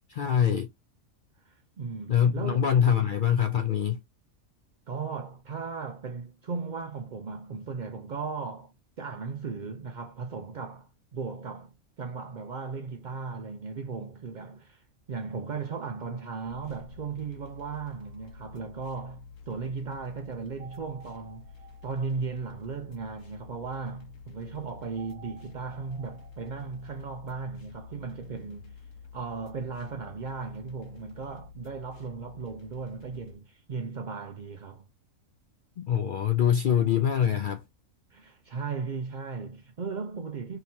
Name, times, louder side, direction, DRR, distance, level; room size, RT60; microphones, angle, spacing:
voice 1, 0.1-0.7 2.1-4.0 35.8-37.7, left 9 dB, 85° left, 0.4 m, -24 dB
voice 2, 1.4-2.7 4.9-11.7 12.0-21.5 21.8-28.8 29.1-34.8 38.1-40.6, right 5 dB, 70° right, 0.4 m, -36 dB
sound 1, 16.4-33.4, left 5 dB, 65° left, 1.2 m, -49 dB
sound 2, 17.8-19.6 20.6-23.1 24.9-27.1, right 6 dB, 85° right, 1.8 m, -55 dB
3.8 x 2.9 x 2.7 m
omnidirectional pair, 1.5 m